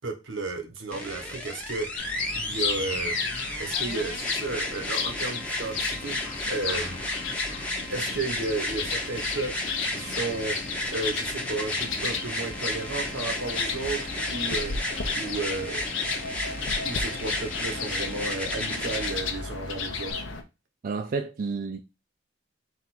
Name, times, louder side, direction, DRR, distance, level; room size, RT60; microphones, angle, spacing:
voice 1, 0.0-3.2 3.6-6.2 6.5-7.1 7.9-10.6 10.9-14.8 15.1-15.9 16.8-20.2, right 3 dB, 80° right, 1.1 m, -33 dB
sound 1, 0.9-19.1 20.1-20.2, left 1 dB, 5° left, 0.8 m, -33 dB
sound 2, 2.0-20.4, left 5 dB, 80° left, 0.8 m, -34 dB
voice 2, 20.8-21.8, right 4 dB, 45° right, 0.4 m, -30 dB
4.1 x 2.5 x 4.1 m
head